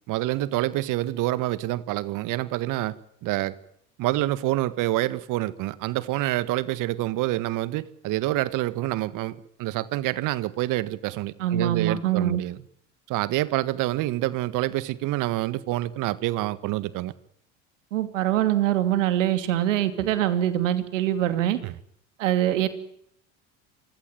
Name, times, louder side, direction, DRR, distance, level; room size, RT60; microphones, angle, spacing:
voice 1, 0.1-3.0 3.2-3.6 4.0-12.6 13.1-17.1 21.6-21.7, right 16 dB, 55° right, 1.6 m, -27 dB
voice 2, 11.4-12.4 17.9-21.6 22.2-22.7, right 12 dB, 80° right, 2.8 m, -23 dB
27.5 x 16.5 x 9.2 m
hypercardioid pair, 80°, 37 cm